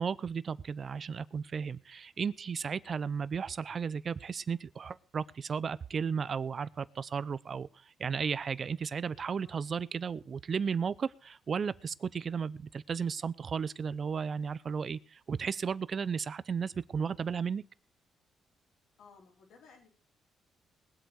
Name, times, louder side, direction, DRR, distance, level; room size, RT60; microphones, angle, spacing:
voice 1, 0.0-7.7 8.0-17.6, right 6 dB, 45° right, 19 dB, 0.6 m, -34 dB
voice 2, 19.0-19.9, left 5 dB, 75° left, 1 dB, 4.7 m, -57 dB
20.5 x 8.0 x 4.7 m, 0.36 s
cardioid pair, 90°, 0 cm